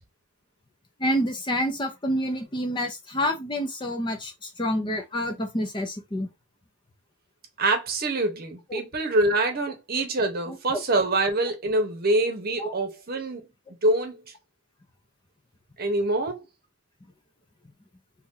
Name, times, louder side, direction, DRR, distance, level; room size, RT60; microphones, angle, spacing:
voice 1, 1.0-6.3 8.7-8.8 10.5-10.6 12.6-12.7, equal, 20° left, 0.6 m, -28 dB
voice 2, 7.6-13.5 13.8-14.2 15.8-16.4, right 2 dB, 45° right, 0.9 m, -25 dB
2.9 x 2.6 x 3.7 m
head